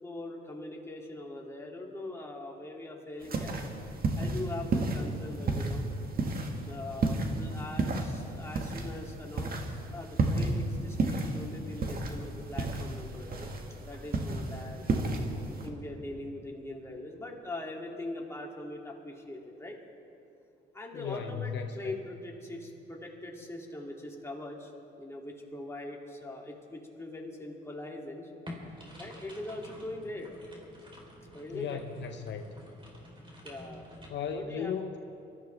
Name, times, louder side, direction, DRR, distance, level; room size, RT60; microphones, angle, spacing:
voice 1, 0.0-3.6 4.1-5.9 6.7-9.5 9.9-13.5 13.8-15.1 15.6-19.8 20.7-24.7 25.0-28.3 29.0-30.3 31.3-31.8 33.4-34.0 34.3-34.8, left 2 dB, 15° left, -1 dB, 2.6 m, -41 dB
sound 1, 3.2-15.7, right 2 dB, 50° right, 1.8 m, -32 dB
voice 2, 20.9-21.9 31.5-32.5 34.1-35.0, left 7 dB, 65° left, 6 dB, 0.8 m, -36 dB
sound 2, 28.5-34.1, equal, 25° right, 3.8 m, -49 dB
24.5 x 14.0 x 3.4 m, 2.7 s
cardioid pair, 90°, 20 cm